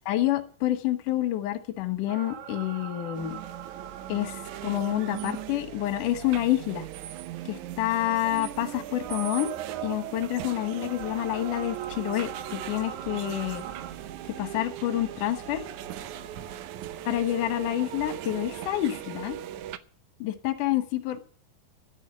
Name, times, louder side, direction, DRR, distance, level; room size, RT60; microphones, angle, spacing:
voice 1, 0.1-3.4 4.1-6.9 7.5-9.5 9.8-13.6 14.4-15.6 17.1-19.4 20.2-21.3, left 14 dB, 65° left, 9 dB, 2.5 m, -28 dB
sound 1, 2.1-6.1 6.6-6.7 8.6-13.9, right 8 dB, 60° right, 2.2 m, -42 dB
sound 2, 3.2-19.8, right 13 dB, 80° right, 1.8 m, -38 dB
sound 3, 12.5-18.6, equal, 45° right, 5.7 m, -52 dB
10.0 x 9.2 x 9.9 m, 0.43 s
omnidirectional pair, 4.2 m